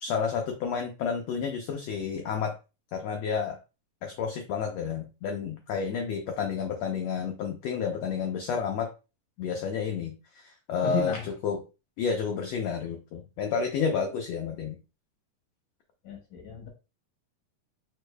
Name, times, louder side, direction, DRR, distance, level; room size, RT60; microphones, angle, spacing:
voice 1, 0.0-2.5 2.9-3.6 4.0-8.9 9.4-11.6 12.0-14.8, left 6 dB, 85° left, 3 dB, 1.4 m, -30 dB
voice 2, 10.8-11.3 16.0-16.7, left 5 dB, 70° left, 2 dB, 1.8 m, -33 dB
5.0 x 4.2 x 2.2 m, 0.30 s
omnidirectional pair, 3.9 m